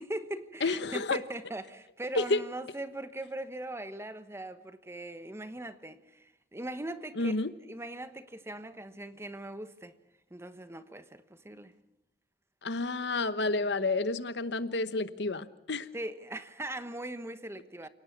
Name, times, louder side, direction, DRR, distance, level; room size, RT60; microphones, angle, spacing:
voice 1, 0.0-7.4 7.7-9.9 10.3-11.7 13.4-13.9 15.9-17.9, right 1 dB, 15° right, 1.2 m, -40 dB
voice 2, 0.6-1.2 2.1-2.4 7.2-7.5 12.6-15.9, left 3 dB, 70° left, 1.0 m, -30 dB
28.5 x 18.5 x 6.0 m
head